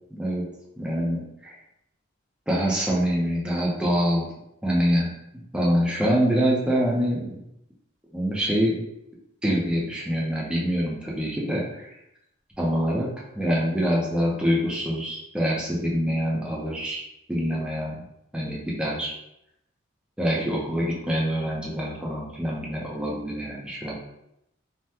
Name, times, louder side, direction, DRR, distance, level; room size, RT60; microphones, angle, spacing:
voice 1, 0.1-0.5 0.8-1.5 2.5-4.3 4.6-7.3 8.1-8.8 9.4-11.9 12.6-13.1 13.4-17.0 17.3-18.0 18.3-19.1 20.2-23.9, equal, 5° right, -4 dB, 0.6 m, -25 dB
3.4 x 2.2 x 2.8 m, 0.81 s
head